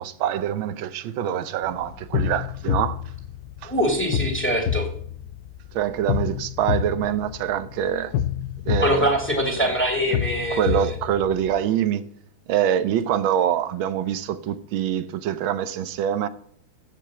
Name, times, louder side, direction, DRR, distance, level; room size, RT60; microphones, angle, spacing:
voice 1, 0.0-3.0 3.6-3.7 5.7-8.1 8.6-9.1 10.5-12.0 12.5-16.3, right 10 dB, 70° right, 1.5 m, -25 dB
sound 1, 1.6-11.6, left 9 dB, 75° left, 0.8 m, -29 dB
voice 2, 3.6-4.9 8.8-10.9, equal, 5° left, 2.2 m, -23 dB
15.0 x 5.2 x 7.5 m
omnidirectional pair, 2.4 m